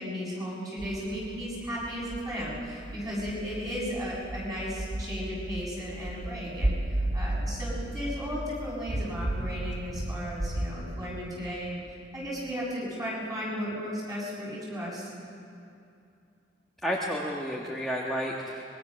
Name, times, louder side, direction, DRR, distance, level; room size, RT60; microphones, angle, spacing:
voice 1, 0.0-15.1, equal, 20° right, -6 dB, 7.0 m, -35 dB
sound 1, 0.8-10.7, right 1 dB, 80° right, 2.1 m, -34 dB
voice 2, 16.8-18.6, equal, ahead, -4 dB, 1.5 m, -31 dB
25.0 x 22.0 x 6.4 m, 2.6 s
head